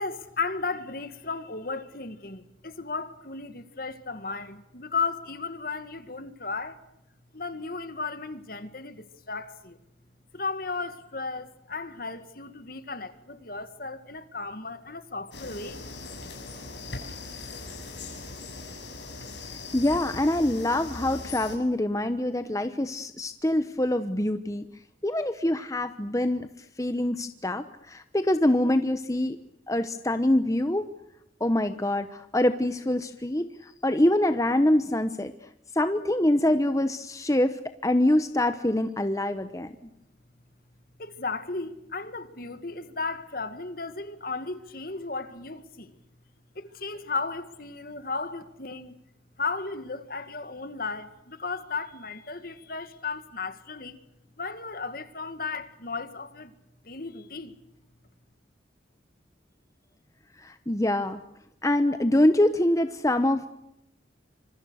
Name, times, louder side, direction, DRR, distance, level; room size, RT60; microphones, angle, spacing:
voice 1, 0.0-6.8 7.3-9.8 10.3-15.8 41.0-45.9 46.6-48.9 49.4-54.0 54.4-56.5 56.8-57.6, left 4 dB, 50° left, 2.2 m, -35 dB
sound 1, 15.3-21.6, left 3 dB, 75° left, 6.9 m, -40 dB
voice 2, 19.7-24.7 25.0-26.5 26.8-29.4 29.7-30.9 31.4-35.3 35.7-39.7 60.4-61.2 61.6-63.5, left 1 dB, 15° left, 1.0 m, -25 dB
27.0 x 26.0 x 6.5 m
head